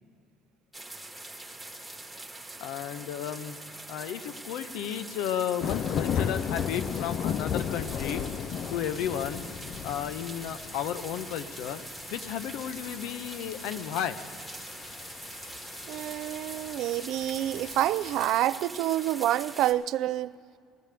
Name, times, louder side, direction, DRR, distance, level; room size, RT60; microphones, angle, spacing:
sound 1, 0.7-19.7, right 2 dB, 5° right, 1.1 m, -43 dB
voice 1, 2.6-3.6 3.9-8.2 8.7-9.4 9.8-11.8 12.1-14.2, left 9 dB, 75° left, 0.7 m, -33 dB
sound 2, 5.6-18.3, left 8 dB, 45° left, 0.3 m, -36 dB
voice 2, 15.9-20.3, right 13 dB, 60° right, 0.3 m, -28 dB
20.0 x 14.5 x 3.4 m
cardioid pair, 155°, 0 cm